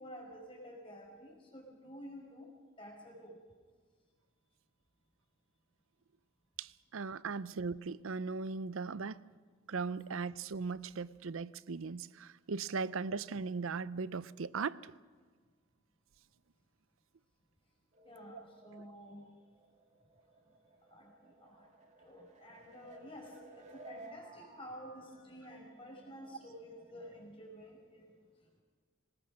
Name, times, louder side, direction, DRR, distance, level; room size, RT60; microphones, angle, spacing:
voice 1, 0.0-2.5 2.8-3.4 18.0-19.2 20.9-21.7 22.0-28.1, equal, 25° left, 5.3 m, -51 dB
voice 2, 6.6-9.2 9.7-14.8 18.3-18.4, right 4 dB, 70° right, 0.6 m, -38 dB
sound 1, 17.9-27.3, right 2 dB, 35° right, 2.1 m, -57 dB
24.0 x 20.0 x 6.4 m
head